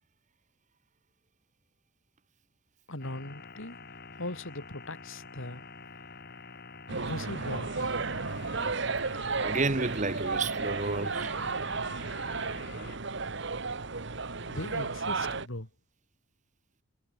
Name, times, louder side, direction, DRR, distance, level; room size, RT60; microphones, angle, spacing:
voice 1, 2.9-3.8 4.2-5.6 6.9-8.0 14.5-15.7, left 1 dB, 75° left, 3.8 m, -39 dB
sound 1, 3.0-13.0, left 4 dB, 50° left, 6.9 m, -48 dB
sound 2, 6.9-15.5, right 4 dB, 60° right, 1.4 m, -33 dB
voice 2, 9.4-11.3, right 3 dB, 40° right, 1.4 m, -31 dB
head